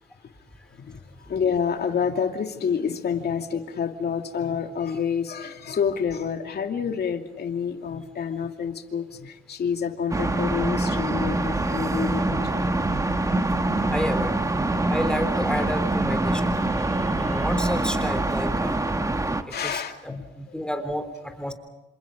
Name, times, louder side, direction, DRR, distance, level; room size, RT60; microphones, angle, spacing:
voice 1, 0.8-12.7 16.9-17.0 19.5-20.2, left 7 dB, 55° left, 5 dB, 2.6 m, -28 dB
sound 1, 10.1-19.4, right 2 dB, 15° right, 1.5 m, -24 dB
voice 2, 13.9-14.4 14.9-18.8 19.5-21.5, equal, 5° left, 7 dB, 3.7 m, -31 dB
28.0 x 27.0 x 5.3 m, 1.0 s
cardioid pair, 90°, 20 cm